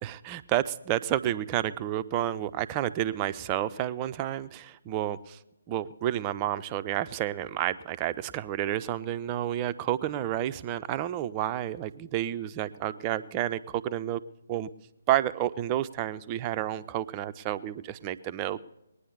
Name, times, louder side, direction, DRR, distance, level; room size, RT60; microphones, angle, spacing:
voice 1, 0.0-5.4 5.7-14.2 14.5-14.7 15.1-18.6, right 12 dB, 20° right, 12 dB, 0.5 m, -30 dB
20.5 x 9.8 x 6.8 m, 0.90 s
figure-of-eight pair, 140°, 0 cm